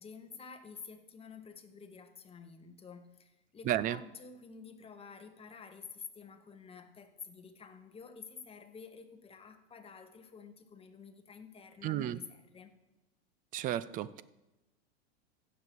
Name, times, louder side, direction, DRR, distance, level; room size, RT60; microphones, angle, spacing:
voice 1, 0.0-12.7, left 5 dB, 15° left, 7 dB, 1.2 m, -50 dB
voice 2, 3.7-4.0 11.8-12.2 13.5-14.2, right 12 dB, 25° right, 17 dB, 0.4 m, -32 dB
15.5 x 6.9 x 4.7 m, 1.0 s
hypercardioid pair, 115°, 33 cm